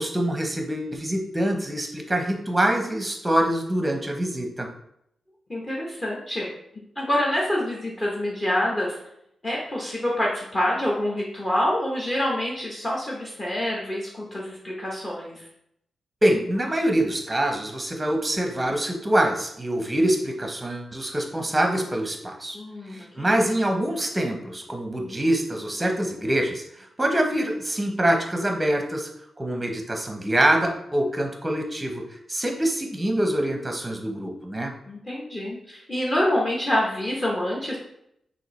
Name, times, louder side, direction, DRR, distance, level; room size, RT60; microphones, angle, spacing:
voice 1, 0.0-4.7 16.2-22.6 22.9-29.1 29.4-34.7, right 1 dB, 10° right, 2 dB, 0.8 m, -25 dB
voice 2, 5.5-6.5 7.0-9.0 9.4-15.4 22.5-23.4 34.9-37.8, left 1 dB, 25° left, -4 dB, 0.9 m, -26 dB
6.3 x 2.6 x 3.1 m, 0.75 s
wide cardioid pair, 125°, 0 cm